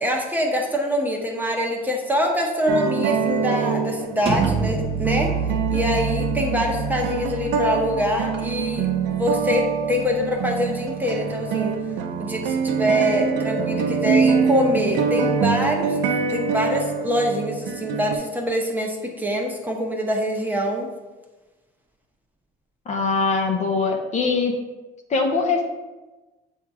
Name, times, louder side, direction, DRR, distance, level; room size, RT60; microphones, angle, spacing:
voice 1, 0.0-5.3 5.7-11.7 12.2-16.0 16.3-20.9, equal, 10° right, 0 dB, 0.9 m, -24 dB
sound 1, 2.7-18.2, right 6 dB, 80° right, 0.6 m, -25 dB
sound 2, 4.3-9.9, right 4 dB, 35° right, 0.6 m, -28 dB
voice 2, 22.9-24.5 25.1-25.7, left 4 dB, 45° left, 2 dB, 0.8 m, -22 dB
7.2 x 2.8 x 4.7 m, 1.2 s
cardioid pair, 110°, 17 cm